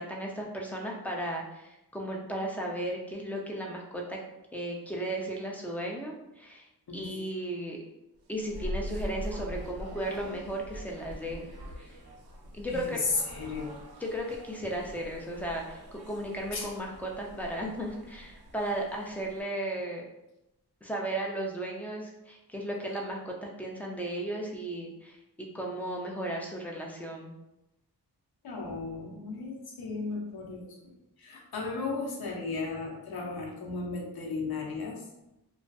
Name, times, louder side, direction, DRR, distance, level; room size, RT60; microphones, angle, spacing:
voice 1, 0.0-4.2 4.5-6.7 6.9-7.8 8.3-11.4 11.8-11.9 12.5-13.0 14.0-20.0 20.8-27.3, right 1 dB, 5° left, -1 dB, 0.4 m, -35 dB
sound 1, 8.2-19.4, equal, 65° right, 0.6 m, -43 dB
voice 2, 12.7-13.7 16.5-16.7 28.4-35.0, left 4 dB, 65° left, -1 dB, 0.7 m, -35 dB
2.5 x 2.3 x 2.2 m, 0.90 s
wide cardioid pair, 95°, 40 cm